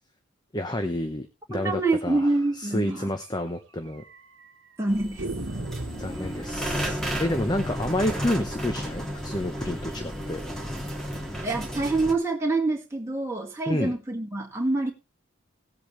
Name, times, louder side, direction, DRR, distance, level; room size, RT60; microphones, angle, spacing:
voice 1, 0.5-4.0 6.0-10.4 13.7-14.0, left 1 dB, 20° left, 0.8 m, -29 dB
voice 2, 1.6-3.1 4.8-5.2 11.4-14.9, right 2 dB, 15° right, 2.0 m, -26 dB
sound 1, 2.4-2.5 2.8-2.9 3.2-3.3 3.9-4.5 5.2-10.0, right 2 dB, 60° right, 1.3 m, -39 dB
sound 2, 4.9-12.1, equal, ahead, 2.0 m, -33 dB
18.0 x 8.3 x 3.3 m
head